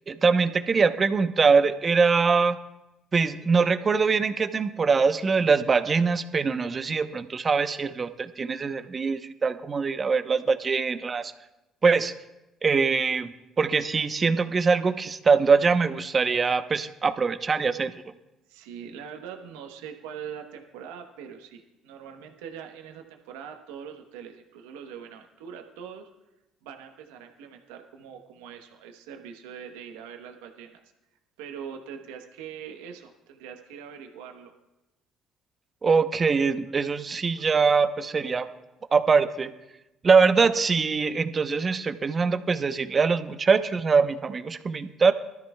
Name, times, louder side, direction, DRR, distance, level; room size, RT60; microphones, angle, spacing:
voice 1, 0.1-2.6 3.1-11.3 11.8-12.1 12.6-17.9 35.8-38.5 38.9-39.5 40.0-45.1, right 5 dB, 35° right, 10 dB, 0.8 m, -23 dB
voice 2, 18.5-26.1 26.6-30.8 31.4-34.5, right 7 dB, 85° right, 4 dB, 1.0 m, -42 dB
20.5 x 13.0 x 2.3 m, 0.97 s
hypercardioid pair, 65°, 0 cm